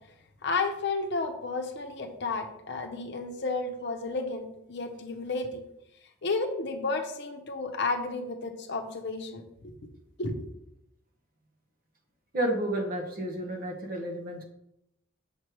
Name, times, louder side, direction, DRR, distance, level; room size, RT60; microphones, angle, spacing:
voice 1, 0.4-5.6 6.2-9.7 10.2-10.5, left 3 dB, 60° left, 5 dB, 0.7 m, -32 dB
voice 2, 12.3-14.4, right 1 dB, 45° right, 2 dB, 1.1 m, -31 dB
6.6 x 3.2 x 4.6 m, 0.82 s
head